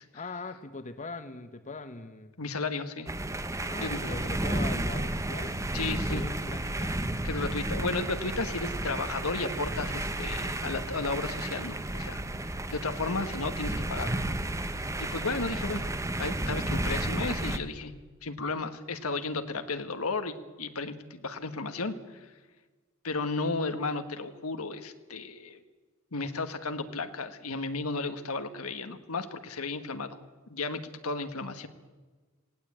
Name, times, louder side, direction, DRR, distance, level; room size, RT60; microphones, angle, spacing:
voice 1, 0.1-2.3 3.7-5.6 6.1-6.9, left 3 dB, 35° left, 10 dB, 1.0 m, -41 dB
voice 2, 2.4-3.1 3.8-4.0 5.7-6.2 7.2-12.2 12.5-14.3 14.7-15.8 16.2-17.9 18.2-22.2 23.0-25.6 26.1-30.2 30.5-31.7, left 3 dB, 85° left, 8 dB, 1.5 m, -34 dB
sound 1, 3.1-17.6, right 1 dB, 15° right, 0.9 m, -32 dB
18.5 x 17.5 x 8.7 m, 1.3 s
head